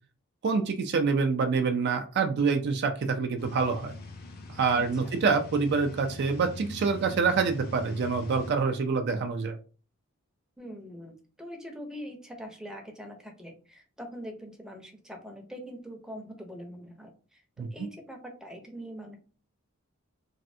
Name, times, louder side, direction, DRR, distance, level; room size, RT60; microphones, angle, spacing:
voice 1, 0.4-3.9 4.6-9.6 17.6-17.7, right 5 dB, 55° right, 6 dB, 0.4 m, -26 dB
sound 1, 3.4-8.5, left 2 dB, 50° left, 0.6 m, -42 dB
voice 2, 4.7-5.1 10.6-19.2, equal, 5° right, 2 dB, 0.6 m, -43 dB
3.2 x 2.5 x 2.6 m, 0.37 s
head